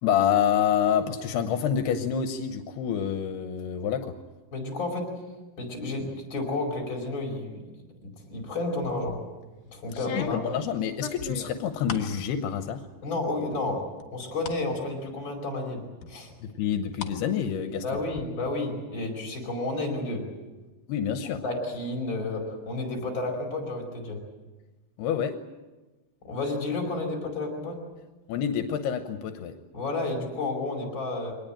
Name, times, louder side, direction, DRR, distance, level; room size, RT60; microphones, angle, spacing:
voice 1, 0.0-4.1 10.1-12.8 16.4-18.0 20.9-21.4 25.0-25.4 28.3-29.5, left 8 dB, 85° left, 8 dB, 3.0 m, -27 dB
voice 2, 4.5-5.1 5.6-7.6 8.0-9.2 9.7-10.6 13.0-13.8 14.1-15.8 16.1-16.3 17.8-20.2 21.4-24.2 26.2-27.8 29.7-31.3, left 2 dB, 30° left, 0 dB, 5.3 m, -31 dB
sound 1, 8.8-9.3 9.9-12.2 12.6-13.2 13.5-14.6 15.1-15.2 16.0-17.2 17.5-18.2, left 8 dB, 60° left, 2.7 m, -39 dB
23.5 x 19.5 x 8.9 m, 1.2 s
omnidirectional pair, 4.6 m